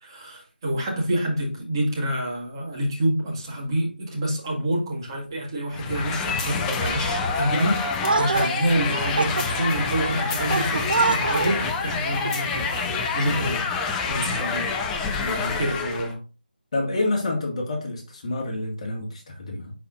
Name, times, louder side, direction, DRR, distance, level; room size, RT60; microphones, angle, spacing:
voice 1, 0.0-7.8 8.2-13.7 14.1-14.7 15.2-16.2, right 1 dB, 30° right, 1.9 m, -27 dB
sound 1, 5.7-16.1, left 5 dB, 5° left, 0.3 m, -27 dB
sound 2, 8.0-13.5, right 4 dB, 60° right, 0.4 m, -28 dB
voice 2, 16.7-19.7, left 2 dB, 35° left, 1.9 m, -28 dB
10.5 x 4.2 x 2.5 m
figure-of-eight pair, 165°, 6 cm